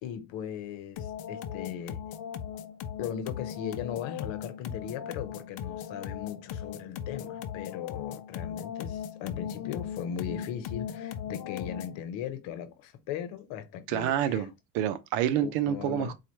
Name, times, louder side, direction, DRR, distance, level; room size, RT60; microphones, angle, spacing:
voice 1, 0.0-2.0 3.0-14.5 15.4-16.1, left 9 dB, 70° left, 0.9 m, -38 dB
sound 1, 1.0-12.0, left 9 dB, 50° left, 0.6 m, -38 dB
voice 2, 13.9-16.1, right 10 dB, 80° right, 0.7 m, -28 dB
4.2 x 2.4 x 3.0 m
supercardioid pair, 85°, 47 cm